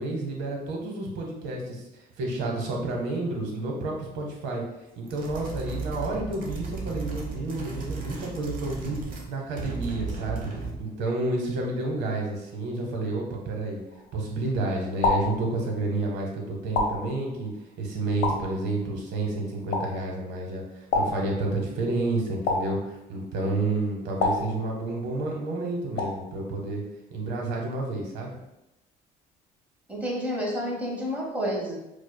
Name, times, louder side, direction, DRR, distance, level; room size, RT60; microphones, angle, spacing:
voice 1, 0.0-4.6 5.0-9.0 9.3-10.5 10.8-13.8 14.1-17.5 17.8-26.8 27.1-28.4, right 2 dB, 85° right, 0 dB, 0.9 m, -30 dB
sound 1, 5.1-9.3 9.5-10.9, right 4 dB, 55° right, 0.8 m, -35 dB
sound 2, 13.9-14.4 15.0-16.0 16.7-17.6 18.2-19.1 19.7-20.4 20.9-21.8 22.5-23.3 24.2-25.2 26.0-26.6, left 3 dB, 90° left, 0.6 m, -30 dB
voice 2, 29.9-31.8, equal, 10° right, -3 dB, 1.0 m, -29 dB
4.7 x 2.2 x 2.2 m, 0.89 s
cardioid pair, 110°, 17 cm